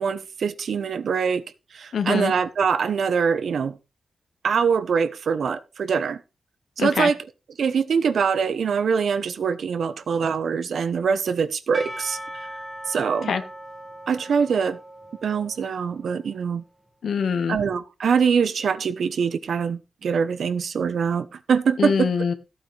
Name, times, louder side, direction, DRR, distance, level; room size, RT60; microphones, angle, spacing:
voice 1, 0.0-1.4 1.7-3.8 4.4-6.2 6.8-7.2 7.6-12.5 12.9-13.3 14.1-14.8 15.2-16.6 17.5-22.1, right 6 dB, 75° right, 1.0 m, -23 dB
voice 2, 1.9-2.3 6.8-7.1 13.3-13.4 17.0-17.6 21.8-22.3, left 6 dB, 75° left, 1.5 m, -23 dB
Percussion / Church bell, 11.7-16.2, equal, 5° right, 1.8 m, -39 dB
14.5 x 8.7 x 3.4 m
wide cardioid pair, 120°, 0 cm